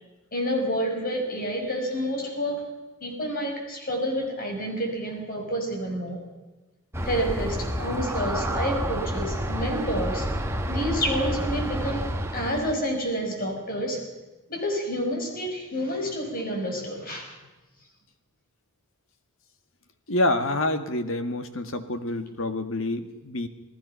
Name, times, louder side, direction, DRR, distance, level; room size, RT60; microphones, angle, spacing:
voice 1, 0.3-2.6 3.0-6.2 7.0-10.3 10.7-14.0 14.5-17.4, equal, 40° left, 2 dB, 5.9 m, -29 dB
Aircraft, 6.9-12.7, equal, 10° right, 1.4 m, -29 dB
voice 2, 20.1-23.5, left 2 dB, 65° left, 8 dB, 2.0 m, -27 dB
29.0 x 18.5 x 5.8 m, 1.1 s
head